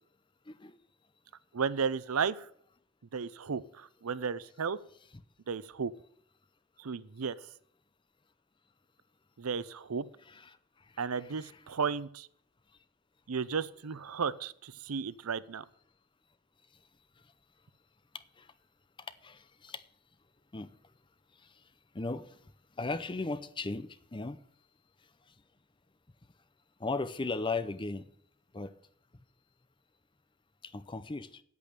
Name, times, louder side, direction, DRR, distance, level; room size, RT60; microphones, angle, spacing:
voice 1, 0.5-0.8 10.2-11.6 18.4-18.5 19.2-19.8 20.5-20.7 21.4-21.6 21.9-24.4 26.8-28.0 28.5-28.7 30.6-31.4, left 3 dB, 25° left, 0.6 m, -37 dB
voice 2, 1.5-2.5 3.1-4.8 5.5-5.9 6.8-7.4 9.4-10.0 11.0-12.3 13.3-15.6, right 6 dB, 90° right, 0.6 m, -34 dB
8.5 x 8.4 x 8.7 m
head